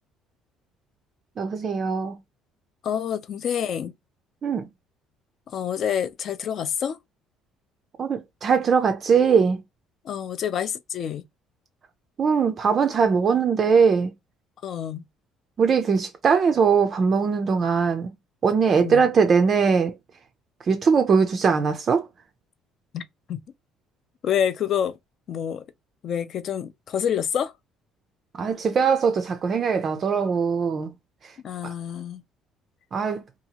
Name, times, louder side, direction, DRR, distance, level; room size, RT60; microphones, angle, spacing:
voice 1, 1.4-2.1 4.4-4.7 8.0-9.6 12.2-14.1 15.6-18.1 18.4-20.0 20.7-22.1 28.3-30.9 31.2-31.3 31.6-31.7 32.9-33.2, right 5 dB, 30° right, 0.4 m, -21 dB
voice 2, 2.8-3.9 5.5-7.0 10.0-11.2 14.6-15.0 18.8-19.0 22.9-23.0 23.3-23.4 24.2-25.0 25.3-25.6 26.0-27.5 31.4-32.2, left 9 dB, 40° left, 0.4 m, -27 dB
2.8 x 2.3 x 2.8 m
cardioid pair, 160°, 0 cm